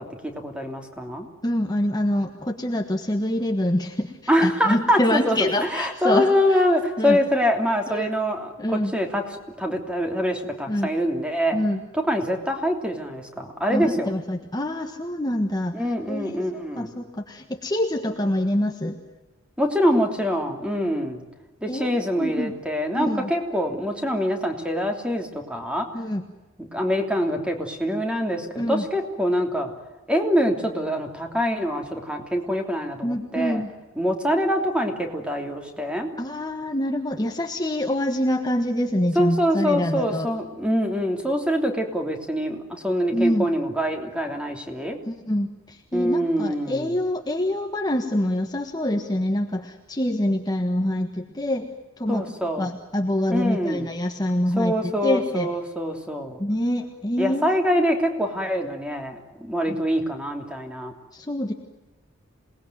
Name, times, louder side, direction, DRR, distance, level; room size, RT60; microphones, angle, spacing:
voice 1, 0.0-1.3 4.3-11.6 11.9-14.1 15.7-16.9 19.6-21.2 21.6-25.9 26.6-29.7 30.1-33.6 34.0-36.1 39.1-45.0 45.9-47.0 52.1-52.7 53.3-53.9 54.5-56.4 57.2-60.9, equal, 5° right, 4 dB, 3.1 m, -25 dB
voice 2, 1.4-4.1 4.4-6.6 7.0-7.2 7.9-8.1 8.6-8.9 10.7-10.9 11.5-11.8 13.7-15.7 16.1-19.0 21.7-22.5 22.9-23.3 25.9-26.2 28.6-28.8 33.0-33.7 36.2-40.3 43.1-43.4 45.1-51.7 52.0-52.2 52.6-55.5 56.4-57.5 59.7-59.8 61.1-61.5, left 1 dB, 20° left, 4 dB, 1.4 m, -25 dB
27.5 x 19.5 x 9.3 m, 1.2 s
head